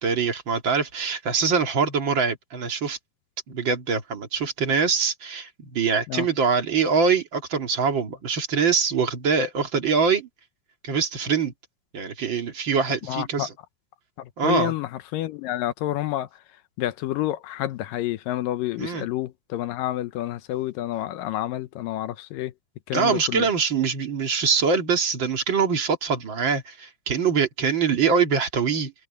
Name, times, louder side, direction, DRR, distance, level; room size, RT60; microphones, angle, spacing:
voice 1, 0.0-3.0 3.5-10.3 10.8-11.5 11.9-13.5 14.4-14.7 18.8-19.0 22.9-28.9, right 5 dB, 35° right, 2.4 m, -23 dB
voice 2, 13.0-13.5 14.2-16.4 16.8-22.5 22.9-23.5, left 14 dB, 75° left, 2.2 m, -29 dB
open air
omnidirectional pair, 4.5 m